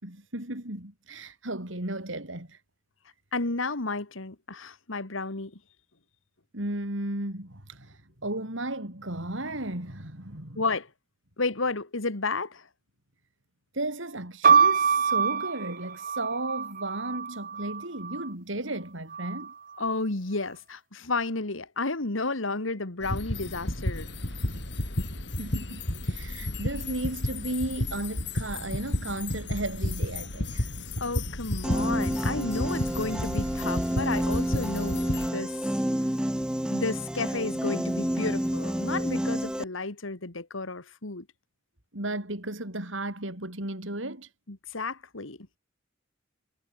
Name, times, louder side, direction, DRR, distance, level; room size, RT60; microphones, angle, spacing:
voice 1, 0.0-2.6 6.5-10.6 13.7-19.5 23.5-23.6 25.4-30.7 41.9-44.3, right 1 dB, 80° right, 5.6 m, -34 dB
voice 2, 3.3-5.6 10.6-10.9 11.4-12.7 19.8-24.1 31.0-35.6 36.0-36.1 36.7-41.3 44.5-45.4, left 3 dB, 90° left, 2.1 m, -32 dB
sound 1, 14.4-18.3 19.1-19.8, right 6 dB, 45° right, 1.2 m, -25 dB
sound 2, 23.0-35.3, left 1 dB, 60° left, 4.1 m, -32 dB
Piano, 31.6-39.6, equal, 5° right, 0.4 m, -29 dB
head